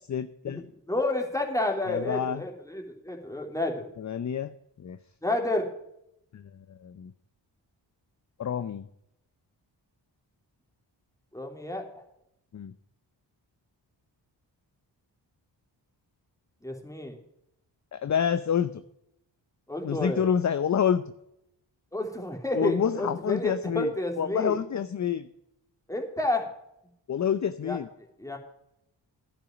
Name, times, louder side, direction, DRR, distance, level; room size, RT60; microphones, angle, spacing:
voice 1, 0.1-0.7 1.9-2.4 4.0-5.0 6.3-6.4 6.8-7.1 8.4-8.8 12.5-12.7 17.9-18.8 19.8-21.0 22.5-23.9 24.2-25.3 27.1-27.9, left 8 dB, 40° left, 12 dB, 0.6 m, -28 dB
voice 2, 0.9-3.8 5.2-5.6 11.3-11.8 16.6-17.2 19.7-20.2 21.9-24.5 25.9-26.5 27.6-27.8 28.2-28.4, left 1 dB, 5° left, 2 dB, 2.9 m, -30 dB
10.5 x 6.0 x 8.8 m, 0.79 s
cardioid pair, 60°, 44 cm